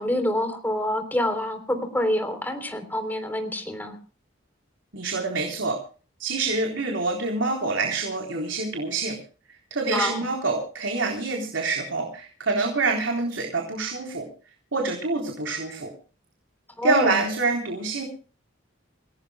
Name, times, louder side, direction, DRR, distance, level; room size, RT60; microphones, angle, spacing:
voice 1, 0.0-4.0 9.9-10.2 16.8-17.2, left 1 dB, 10° left, 6 dB, 3.5 m, -27 dB
voice 2, 4.9-5.8 6.2-9.2 9.7-14.3 14.7-15.9 16.8-18.0, right 3 dB, 75° right, 2 dB, 3.8 m, -26 dB
28.5 x 17.5 x 2.2 m, 0.38 s
head